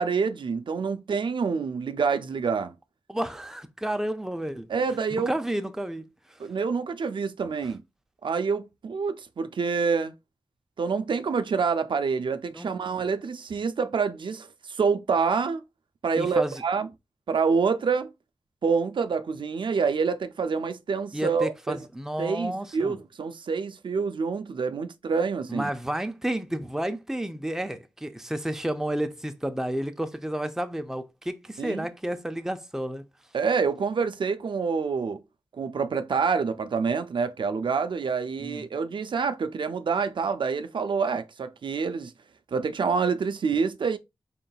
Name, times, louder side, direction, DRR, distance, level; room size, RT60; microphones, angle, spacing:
voice 1, 0.0-2.7 4.7-5.3 6.4-7.8 8.2-10.1 10.8-15.6 16.0-16.9 17.3-18.1 18.6-21.8 22.2-25.7 31.6-31.8 33.3-35.2 35.5-42.1 42.5-44.0, right 5 dB, 65° right, 0.4 m, -27 dB
voice 2, 3.1-4.7 5.2-6.4 12.5-12.7 16.2-16.6 21.1-23.0 25.5-33.1 38.4-38.6, right 1 dB, 5° right, 0.5 m, -31 dB
3.9 x 3.7 x 2.3 m
cardioid pair, 55°, 9 cm